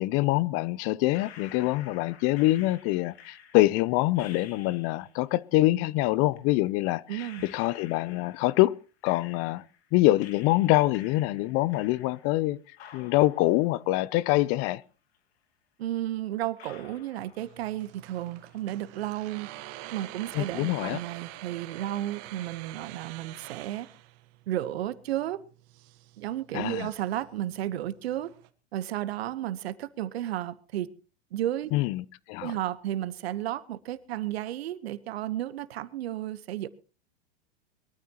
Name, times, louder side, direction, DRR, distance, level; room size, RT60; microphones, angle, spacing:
voice 1, 0.0-8.8 9.0-9.6 9.9-12.6 12.9-14.8 20.3-21.0 26.5-26.9 31.7-32.5, left 18 dB, 45° left, 0.6 m, -25 dB
sound 1, 1.1-5.2 6.3-6.4 7.2-9.9 10.2-12.5 12.8-14.8 15.1-15.2 15.9-16.0 16.6-17.9 18.2-18.7, left 8 dB, 70° left, 2.7 m, -51 dB
voice 2, 7.1-7.4 15.8-19.5 19.9-23.9 24.5-25.4 26.2-28.3 28.7-30.9 31.3-31.7 32.4-36.7, right 13 dB, 70° right, 1.2 m, -33 dB
sound 2, 17.4-28.5, right 16 dB, 50° right, 1.4 m, -47 dB
22.5 x 13.5 x 3.0 m
hypercardioid pair, 105°, 32 cm